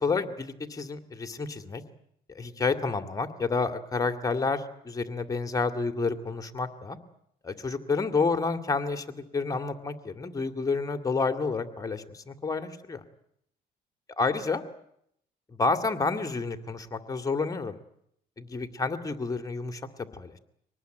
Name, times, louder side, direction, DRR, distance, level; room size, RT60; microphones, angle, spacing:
voice 1, 0.0-1.8 2.3-7.0 7.4-13.0 14.2-14.6 15.6-17.8 18.4-19.8 20.1-20.3, left 4 dB, 20° left, 9 dB, 2.2 m, -29 dB
24.5 x 19.5 x 9.2 m, 0.73 s
cardioid pair, 110°, 17 cm